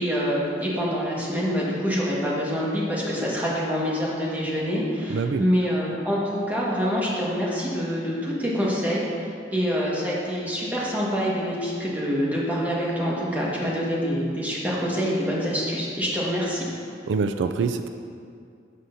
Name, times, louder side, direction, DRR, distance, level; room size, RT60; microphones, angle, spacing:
voice 1, 0.0-16.7, equal, 10° right, -6 dB, 1.5 m, -26 dB
voice 2, 5.1-5.4 17.1-17.9, right 5 dB, 80° right, 9 dB, 0.3 m, -25 dB
13.0 x 6.4 x 2.7 m, 2.3 s
head